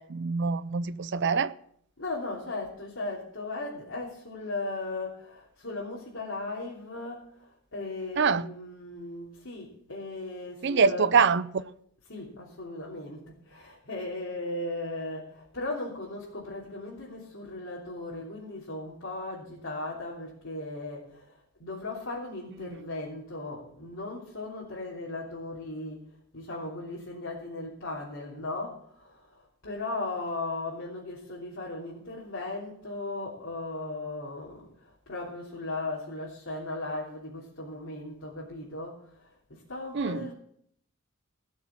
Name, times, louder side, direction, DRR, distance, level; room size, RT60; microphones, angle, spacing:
voice 1, 0.0-1.5 8.2-8.5 10.6-11.5 22.6-22.8 39.9-40.3, right 5 dB, 55° right, 0.6 m, -25 dB
voice 2, 2.0-11.1 12.1-26.0 26.3-40.3, left 2 dB, 65° left, 3.0 m, -37 dB
17.5 x 6.4 x 7.1 m
head